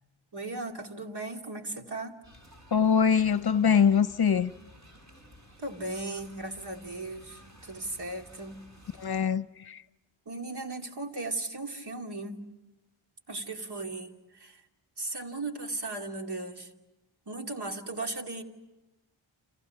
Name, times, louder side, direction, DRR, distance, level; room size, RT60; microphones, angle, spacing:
voice 1, 0.3-2.2 5.6-8.6 10.3-12.5 13.3-14.6 15.0-16.7 17.3-18.4, right 2 dB, 55° right, 2.7 m, -37 dB
sound 1, 2.2-9.2, equal, 35° right, 7.6 m, -54 dB
voice 2, 2.7-4.5 9.0-9.8, left 7 dB, 50° left, 0.8 m, -23 dB
29.5 x 27.0 x 5.9 m
wide cardioid pair, 85°, 49 cm